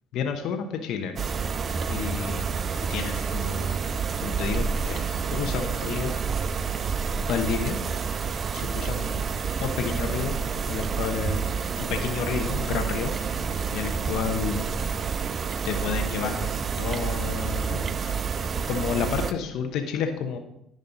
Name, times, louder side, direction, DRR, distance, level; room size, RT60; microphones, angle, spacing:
voice 1, 0.1-1.1 1.9-2.4 2.9-3.8 4.2-6.1 7.1-7.8 8.5-9.3 9.6-10.4 10.7-11.5 11.8-13.1 13.7-14.7 15.6-16.4 16.8-18.1 18.7-20.4, left 7 dB, 70° left, 5 dB, 1.0 m, -30 dB
sound 1, 1.2-19.3, right 6 dB, 45° right, 0.5 m, -29 dB
10.5 x 5.4 x 4.0 m, 0.77 s
hypercardioid pair, 65°, 0 cm